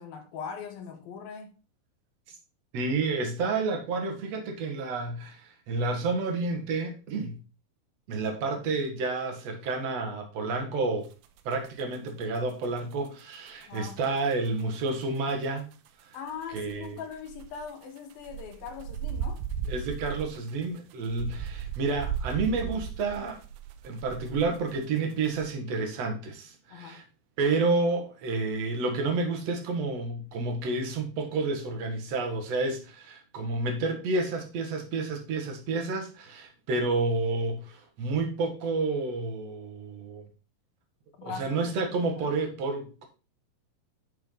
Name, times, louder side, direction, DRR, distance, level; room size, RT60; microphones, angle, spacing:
voice 1, 0.0-1.5 13.7-14.0 16.1-19.4 26.7-27.0 41.2-42.3, left 6 dB, 80° left, 3.3 m, -41 dB
voice 2, 2.7-7.4 8.1-11.1 11.4-15.7 16.5-17.0 19.7-23.4 23.8-27.0 27.4-40.2 41.2-43.1, right 3 dB, 50° right, 2.6 m, -30 dB
sound 1, 11.4-13.8 14.0-14.5 14.7-14.8 15.0-15.2 15.6-15.7 15.9-16.0 16.3-24.8 25.1-25.5, right 8 dB, 80° right, 2.6 m, -36 dB
10.5 x 5.9 x 3.9 m
omnidirectional pair, 4.2 m